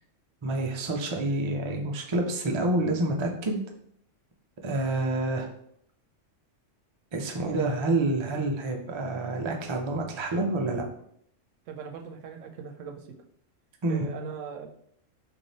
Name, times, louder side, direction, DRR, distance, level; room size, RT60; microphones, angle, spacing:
voice 1, 0.4-3.6 4.6-5.5 7.1-10.9 13.8-14.1, right 2 dB, 50° right, 2 dB, 0.3 m, -28 dB
voice 2, 11.7-13.1 13.9-14.7, right 6 dB, 80° right, 4 dB, 1.0 m, -39 dB
3.3 x 2.6 x 3.9 m, 0.67 s
omnidirectional pair, 1.3 m